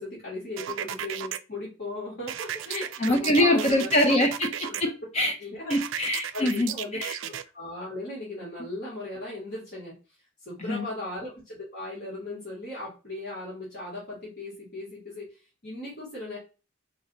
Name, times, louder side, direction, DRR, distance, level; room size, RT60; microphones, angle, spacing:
voice 1, 0.0-3.9 4.7-4.8 5.2-5.7 6.3-9.9 10.5-16.4, left 2 dB, 50° left, -7 dB, 1.7 m, -37 dB
sound 1, 0.6-1.4 2.3-4.8 5.7-7.4, right 10 dB, 65° right, 0.3 m, -34 dB
voice 2, 2.7-5.3 5.7-6.7 7.0-7.2 10.6-10.9, left 1 dB, 35° left, 4 dB, 0.5 m, -24 dB
3.3 x 2.7 x 3.9 m, 0.32 s
head